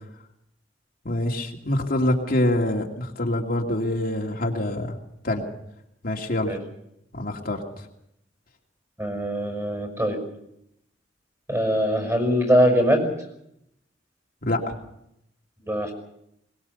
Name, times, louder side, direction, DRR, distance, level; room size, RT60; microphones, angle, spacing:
voice 1, 1.0-5.0 5.2-5.4 6.0-6.6 7.1-7.6 14.4-14.7, left 1 dB, 55° left, 0 dB, 2.4 m, -25 dB
voice 2, 9.0-10.2 11.5-13.1 15.6-15.9, equal, 15° right, 5 dB, 5.8 m, -22 dB
22.0 x 20.5 x 7.0 m, 0.79 s
head